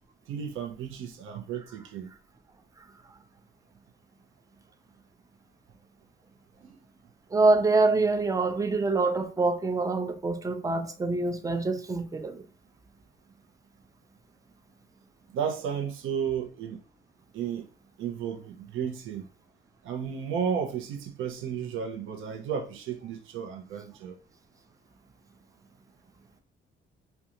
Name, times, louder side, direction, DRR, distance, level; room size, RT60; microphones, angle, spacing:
voice 1, 0.3-2.1 15.3-16.8 17.3-17.7 18.0-19.3 19.8-24.2, right 7 dB, 85° right, 0.6 m, -33 dB
voice 2, 7.3-12.4, right 3 dB, 15° right, 0.4 m, -25 dB
2.4 x 2.2 x 2.8 m
cardioid pair, 90°, 20 cm